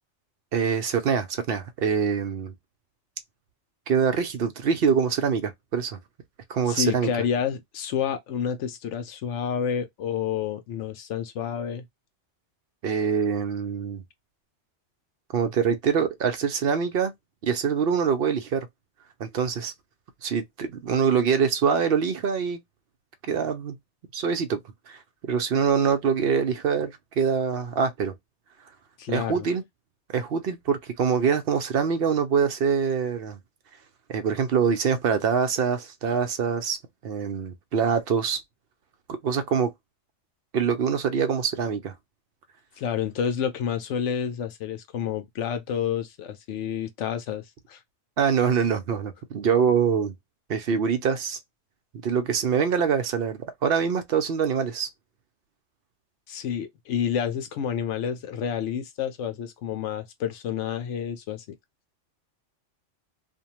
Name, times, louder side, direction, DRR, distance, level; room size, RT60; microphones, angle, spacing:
voice 1, 0.5-2.5 3.9-6.0 6.5-7.1 12.8-14.0 15.3-17.1 17.4-18.7 19.2-19.7 20.2-22.6 23.3-23.8 24.1-24.6 24.9-28.1 29.1-29.6 30.1-33.4 34.1-36.8 37.0-38.4 39.1-39.7 40.5-41.9 48.2-50.1 50.5-51.4 52.0-54.9, right 6 dB, 60° right, 0.7 m, -24 dB
voice 2, 6.7-11.9 29.0-29.5 42.8-47.8 56.3-61.4, left 8 dB, 80° left, 1.0 m, -29 dB
2.6 x 2.1 x 2.8 m
omnidirectional pair, 1.2 m